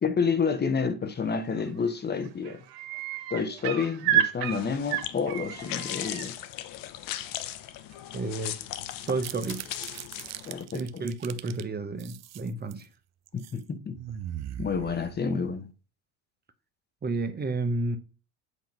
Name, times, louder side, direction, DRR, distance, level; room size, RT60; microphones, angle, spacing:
voice 1, 0.0-2.6 3.3-6.3 10.5-11.0 13.3-14.0 14.6-15.7, left 5 dB, 25° left, 1.0 m, -29 dB
sound 1, 1.6-1.9 2.2-6.3 7.9-8.0, right 11 dB, 75° right, 1.3 m, -30 dB
sound 2, 4.4-10.6, left 13 dB, 65° left, 0.8 m, -38 dB
voice 2, 8.1-8.6 9.1-9.7 10.7-12.9 17.0-18.0, right 3 dB, 25° right, 1.0 m, -31 dB
sound 3, 8.9-11.6 12.0-12.8 13.3-13.6 13.9-15.6, right 11 dB, 45° right, 0.6 m, -40 dB
8.2 x 2.9 x 5.4 m
supercardioid pair, 95°, 36 cm